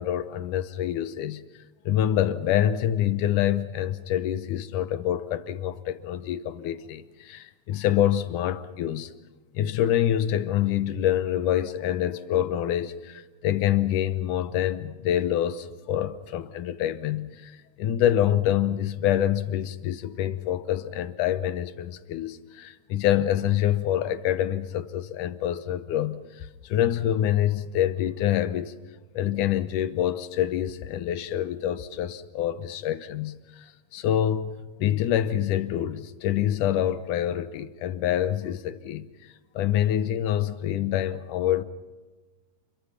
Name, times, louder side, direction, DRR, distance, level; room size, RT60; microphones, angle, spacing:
voice 1, 0.0-1.4 1.9-9.1 9.5-28.7 29.1-39.1 39.6-41.6, left 11 dB, 80° left, 2.5 m, -26 dB
29.0 x 23.0 x 5.9 m
omnidirectional pair, 3.6 m